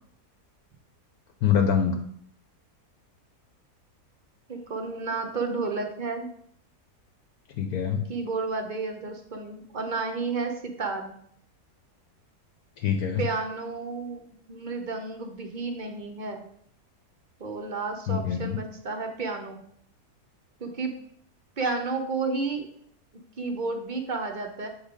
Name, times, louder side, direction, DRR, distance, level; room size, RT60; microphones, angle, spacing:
voice 1, 1.4-2.1 7.6-8.0 12.8-13.3 18.1-18.6, left 7 dB, 75° left, 5 dB, 1.1 m, -25 dB
voice 2, 4.5-6.3 8.1-11.2 13.2-16.4 17.4-19.6 20.6-20.9 21.6-22.7 23.4-24.7, right 4 dB, 50° right, 4 dB, 0.5 m, -31 dB
7.3 x 3.2 x 5.0 m, 0.66 s
omnidirectional pair, 1.7 m